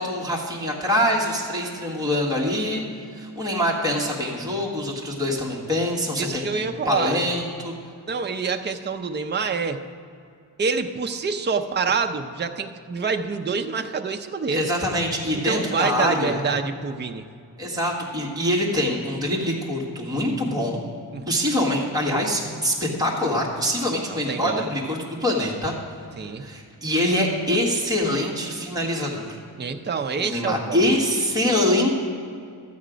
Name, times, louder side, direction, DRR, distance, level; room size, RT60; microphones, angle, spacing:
voice 1, 0.0-2.8 3.1-6.5 6.8-7.7 14.5-16.4 17.6-20.8 21.3-25.7 26.4-29.3 30.2-31.9, left 1 dB, 10° right, -4 dB, 1.5 m, -24 dB
voice 2, 6.2-7.2 8.1-9.8 10.6-14.7 15.3-17.3 21.1-21.2 24.1-24.6 26.2-26.4 29.6-30.8, right 5 dB, 25° right, 6 dB, 0.4 m, -26 dB
12.5 x 8.5 x 5.0 m, 2.4 s
wide cardioid pair, 180°, 44 cm